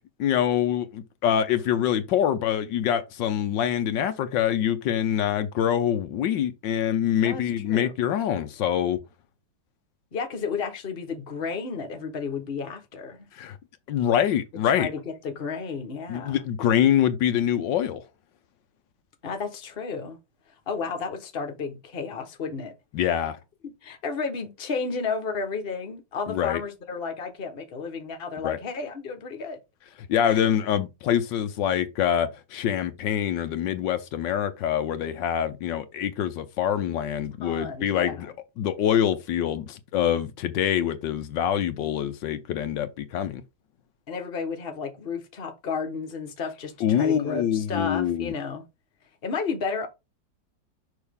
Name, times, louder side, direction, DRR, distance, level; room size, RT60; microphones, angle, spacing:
voice 1, 0.2-9.0 13.3-13.6 13.9-14.9 16.1-18.0 22.9-23.4 26.3-26.6 28.4-28.6 30.1-43.4 46.8-48.3, left 10 dB, 80° left, 1.4 m, -25 dB
voice 2, 10.1-13.3 14.7-16.4 19.2-20.2 20.7-22.7 23.6-29.6 30.2-30.5 37.4-38.3 44.1-48.6 49.2-49.9, left 5 dB, 35° left, 1.3 m, -32 dB
6.4 x 5.6 x 3.5 m
omnidirectional pair, 2.0 m